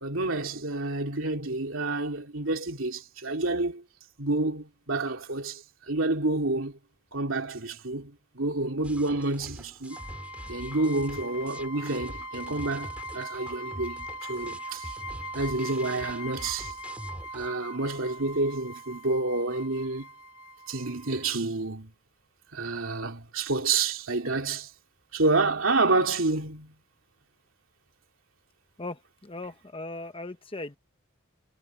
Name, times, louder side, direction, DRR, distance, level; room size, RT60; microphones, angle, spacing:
voice 1, 0.0-3.8 4.2-6.8 7.1-10.0 10.5-14.9 15.3-16.7 17.3-20.1 20.7-21.9 22.5-24.7 25.1-26.7, right 3 dB, 60° right, 3.2 m, -29 dB
sound 1, 8.8-17.5, equal, 5° right, 2.2 m, -44 dB
sound 2, 9.9-21.3, equal, 80° left, 3.0 m, -41 dB
voice 2, 28.8-30.8, left 2 dB, 25° left, 1.0 m, -38 dB
head